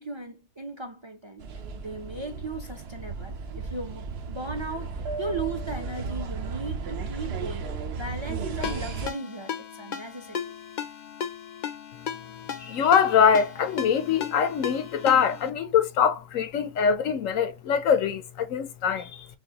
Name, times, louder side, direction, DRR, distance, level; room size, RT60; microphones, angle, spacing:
voice 1, 0.0-7.7 8.0-10.6, right 2 dB, 30° right, 0.6 m, -37 dB
sound 1, 1.4-9.1, right 4 dB, 60° right, 0.8 m, -34 dB
Ringtone, 8.6-15.5, left 8 dB, 55° left, 0.5 m, -36 dB
voice 2, 12.6-19.3, left 7 dB, 90° left, 1.1 m, -23 dB
6.2 x 2.3 x 2.9 m
omnidirectional pair, 1.3 m